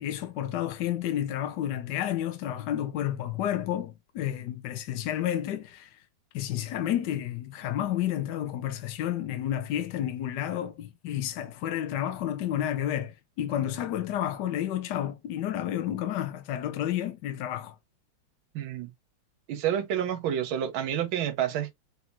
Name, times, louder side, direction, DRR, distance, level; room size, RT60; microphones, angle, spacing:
voice 1, 0.0-6.0 6.3-17.7, left 11 dB, 70° left, 1.1 m, -31 dB
voice 2, 18.5-18.9 19.5-21.7, right 10 dB, 75° right, 1.5 m, -29 dB
4.0 x 3.7 x 2.9 m
omnidirectional pair, 2.3 m